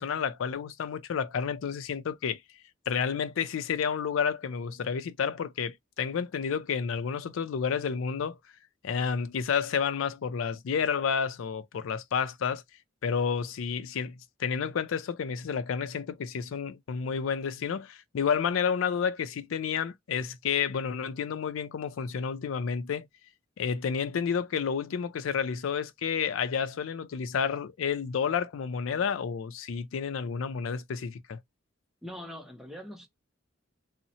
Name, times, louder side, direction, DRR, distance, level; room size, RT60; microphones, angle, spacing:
voice 1, 0.0-2.4 2.9-8.4 8.8-12.6 13.0-23.1 23.6-31.4, left 6 dB, 80° left, 0.4 m, -30 dB
voice 2, 32.0-33.1, equal, ahead, 0.5 m, -42 dB
2.7 x 2.0 x 2.7 m
head